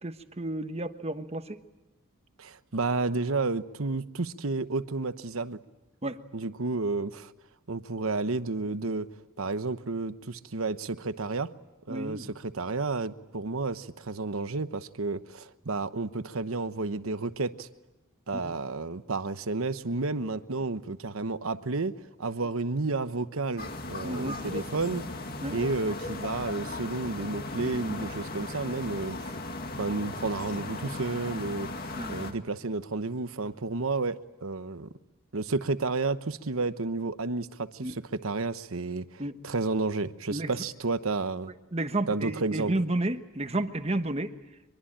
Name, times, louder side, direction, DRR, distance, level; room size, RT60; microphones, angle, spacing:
voice 1, 0.0-1.6 6.0-6.2 11.9-12.3 18.3-18.5 24.0-24.4 25.4-25.5 31.9-32.1 37.8-37.9 39.2-39.3 40.3-40.5 41.7-44.4, right 1 dB, 30° right, 1.3 m, -31 dB
voice 2, 2.4-5.6 6.3-7.3 7.7-9.1 9.4-11.5 11.9-17.7 18.3-21.9 22.2-25.2 25.5-29.4 29.8-34.9 35.3-41.5 42.1-42.7, right 3 dB, 80° right, 1.0 m, -31 dB
sound 1, 23.6-32.3, left 2 dB, 45° left, 2.1 m, -37 dB
24.0 x 23.0 x 8.9 m
head